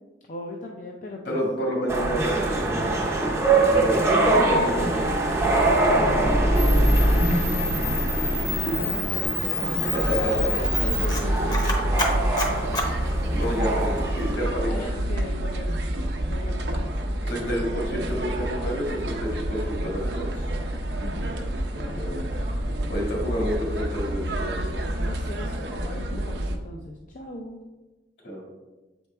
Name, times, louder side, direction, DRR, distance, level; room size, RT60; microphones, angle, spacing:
voice 1, 0.3-1.4 4.2-4.9 6.0-9.1 9.6-9.9 10.8-13.0 14.6-15.8 16.3-16.9 17.3-17.5 20.9-22.0 22.6-23.0 25.0-27.6, left 1 dB, 45° left, 0 dB, 0.5 m, -37 dB
voice 2, 1.2-3.1 3.6-5.1 9.8-10.5 13.3-15.0 17.3-20.5 21.8-22.2 22.9-24.6 28.2-28.4, equal, 70° left, -2 dB, 2.2 m, -29 dB
sound 1, 1.9-14.3, right 2 dB, 15° right, 0.7 m, -23 dB
Camera, 6.5-13.7, left 3 dB, 20° left, 0.8 m, -29 dB
sound 2, 10.0-26.6, right 1 dB, 65° right, 0.7 m, -28 dB
7.5 x 4.5 x 3.3 m, 1.2 s
head